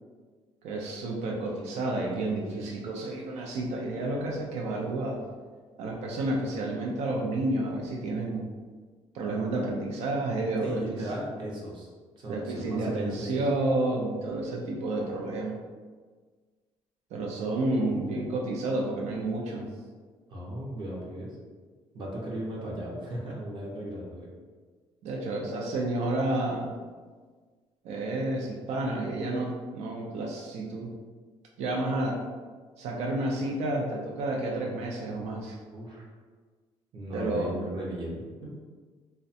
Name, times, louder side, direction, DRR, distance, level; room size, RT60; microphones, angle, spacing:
voice 1, 0.6-5.2 5.8-8.4 9.1-11.0 12.3-15.6 17.1-19.7 25.0-26.7 27.8-30.9 31.6-32.2 32.8-35.6 37.1-37.5, right 2 dB, 90° right, -1 dB, 0.4 m, -30 dB
voice 2, 10.6-11.9 12.2-13.4 20.3-21.3 21.9-24.3 35.7-36.0 36.9-38.5, right 1 dB, 45° right, -4 dB, 0.6 m, -36 dB
2.4 x 2.1 x 2.6 m, 1.5 s
cardioid pair, 165°, 11 cm